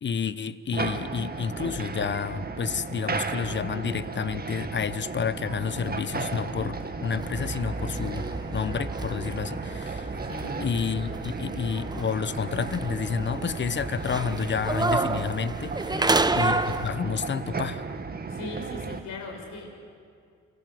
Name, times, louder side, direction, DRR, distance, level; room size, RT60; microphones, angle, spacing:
voice 1, 0.0-10.1 10.6-15.9 16.3-17.8, left 6 dB, 40° left, 15 dB, 1.0 m, -30 dB
sound 1, 0.7-19.0, right 4 dB, 30° right, 1.8 m, -35 dB
sound 2, 5.1-10.9, left 3 dB, 55° left, 2.8 m, -46 dB
sound 3, 7.2-16.9, right 3 dB, 15° right, 0.9 m, -30 dB
voice 2, 10.2-10.7 15.9-16.6 18.3-19.7, left 2 dB, 80° left, 3 dB, 5.4 m, -38 dB
28.5 x 20.5 x 7.8 m, 2.3 s
cardioid pair, 90°, 30 cm